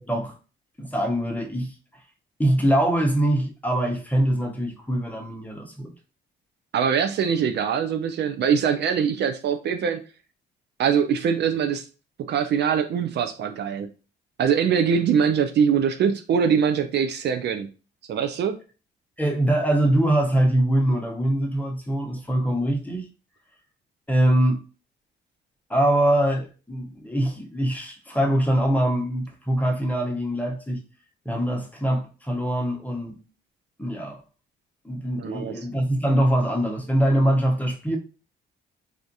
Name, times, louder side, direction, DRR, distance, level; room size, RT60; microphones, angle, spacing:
voice 1, 0.8-1.7 2.4-5.9 19.2-23.1 24.1-24.6 25.7-30.8 31.2-33.2 33.8-34.2 34.8-38.0, right 1 dB, 10° left, 0.8 m, -23 dB
voice 2, 6.7-10.0 10.8-11.8 12.3-13.9 14.4-17.7 18.1-18.6 35.2-35.5, right 7 dB, 60° right, 0.4 m, -23 dB
3.4 x 2.4 x 2.7 m
cardioid pair, 90°, 20 cm